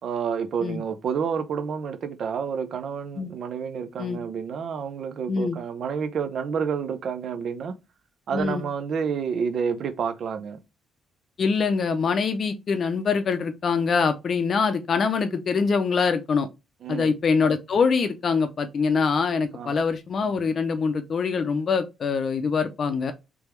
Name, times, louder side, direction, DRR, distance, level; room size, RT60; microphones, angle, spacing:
voice 1, 0.0-7.8 8.3-10.6 16.8-17.1 19.5-19.7, right 6 dB, 60° right, 0.5 m, -29 dB
voice 2, 8.3-8.6 11.4-16.5 16.9-23.1, left 5 dB, 50° left, 0.5 m, -24 dB
3.4 x 3.4 x 3.1 m
cardioid pair, 90°, 0 cm